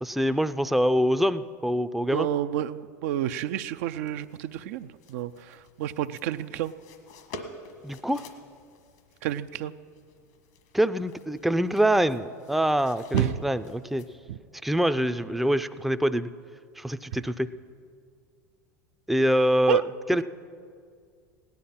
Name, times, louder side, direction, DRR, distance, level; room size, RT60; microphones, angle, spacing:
voice 1, 0.0-2.3 7.8-8.2 10.7-14.0 14.6-16.3 16.8-17.5 19.1-19.8 20.1-20.2, equal, ahead, 11 dB, 0.5 m, -25 dB
voice 2, 2.1-6.7 9.2-9.7 13.1-13.4 14.3-14.4 19.7-19.8, right 12 dB, 65° right, 11 dB, 0.4 m, -29 dB
sound 1, 3.6-14.1, left 2 dB, 70° left, 1.5 m, -48 dB
17.0 x 10.5 x 5.7 m, 2.2 s
hypercardioid pair, 80°, 9 cm